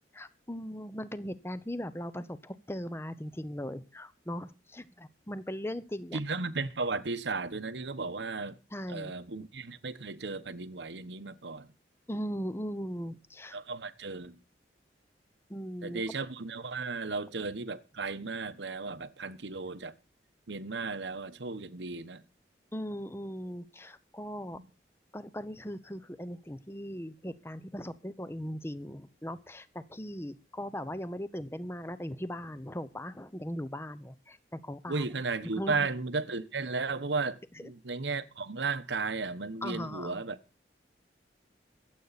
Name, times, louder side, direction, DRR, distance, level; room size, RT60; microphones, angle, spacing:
voice 1, 0.1-6.2 8.7-9.1 12.1-13.6 15.5-16.0 22.7-24.6 25.1-35.1 35.6-35.8 37.6-37.7 39.6-40.2, equal, 15° left, 0.8 m, -39 dB
voice 2, 6.1-8.6 8.9-11.7 13.5-14.4 15.8-19.9 20.5-22.2 34.9-40.4, right 4 dB, 85° right, 1.1 m, -35 dB
24.0 x 8.3 x 4.1 m
head